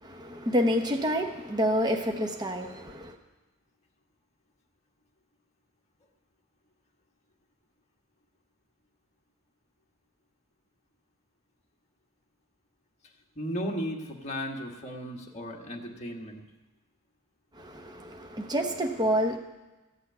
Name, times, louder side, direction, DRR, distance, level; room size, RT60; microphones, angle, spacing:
voice 1, 0.0-3.2 17.6-19.4, equal, 20° right, 3 dB, 0.9 m, -28 dB
voice 2, 13.4-16.4, equal, 30° left, 0 dB, 1.6 m, -35 dB
14.5 x 6.4 x 9.1 m, 1.1 s
head